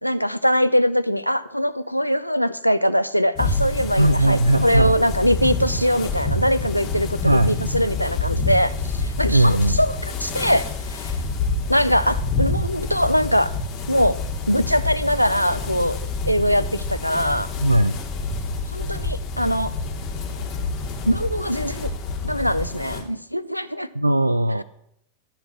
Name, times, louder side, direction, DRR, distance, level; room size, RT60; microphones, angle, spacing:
voice 1, 0.0-11.1 11.7-13.5 13.9-14.2 14.5-16.0 16.2-17.5 18.7-19.7 21.1-21.9 22.2-23.9, equal, 90° left, 13 dB, 0.5 m, -22 dB
sound 1, 3.3-23.0, left 3 dB, 40° left, 3.3 m, -27 dB
voice 2, 4.0-5.0 7.2-7.5 9.3-9.8 17.6-18.0 23.9-24.6, right 1 dB, 85° right, 14 dB, 0.4 m, -18 dB
15.0 x 5.8 x 8.1 m, 0.75 s
figure-of-eight pair, 90°, 0 cm